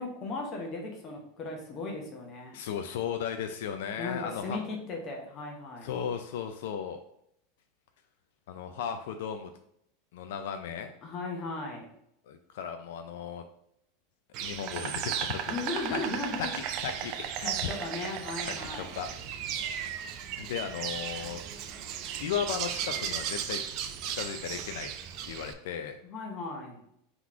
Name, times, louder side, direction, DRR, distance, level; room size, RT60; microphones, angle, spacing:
voice 1, 0.0-2.6 4.0-5.9 11.0-11.9 15.5-16.5 17.4-18.9 26.0-26.8, left 3 dB, 35° left, 1 dB, 0.8 m, -37 dB
voice 2, 2.5-4.6 5.8-7.0 8.5-9.5 10.1-10.9 12.3-13.4 14.4-15.6 15.9-16.0 16.4-17.8 18.5-19.1 19.7-19.8 20.4-21.4 22.2-23.6 24.0-24.9 25.2-26.0, left 8 dB, 75° left, 7 dB, 0.4 m, -36 dB
Insect, 14.3-25.5, right 9 dB, 45° right, 0.4 m, -35 dB
3.9 x 3.0 x 3.6 m, 0.73 s
supercardioid pair, 150°, 0 cm